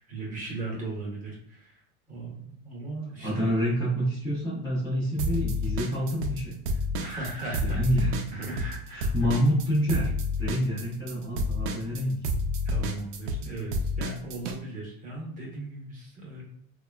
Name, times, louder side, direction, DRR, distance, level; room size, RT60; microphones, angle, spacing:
voice 1, 0.0-1.8 2.1-3.5 6.7-7.8 8.3-9.3 10.6-10.7 12.6-16.4, right 2 dB, 20° right, -4 dB, 0.8 m, -37 dB
voice 2, 3.2-6.5 7.6-8.4 8.9-10.1 10.4-12.2, equal, 10° left, -10 dB, 0.5 m, -27 dB
sound 1, 5.2-6.4 6.7-14.6, left 1 dB, 55° right, 0.5 m, -29 dB
2.9 x 2.2 x 2.2 m, 0.67 s
supercardioid pair, 135°, 42 cm